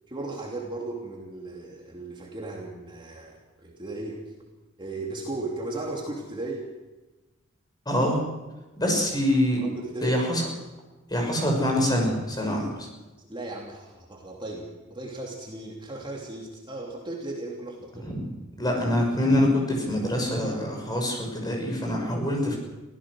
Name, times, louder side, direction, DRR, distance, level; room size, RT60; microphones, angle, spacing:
voice 1, 0.1-4.2 4.8-6.7 8.8-9.0 9.6-10.2 11.4-11.5 13.2-18.1, right 2 dB, 25° right, -1 dB, 3.0 m, -36 dB
voice 2, 7.9-8.2 8.8-9.6 10.0-10.4 11.1-12.9 18.0-22.6, left 1 dB, 20° left, 1 dB, 6.4 m, -25 dB
24.5 x 16.5 x 6.4 m, 1.1 s
head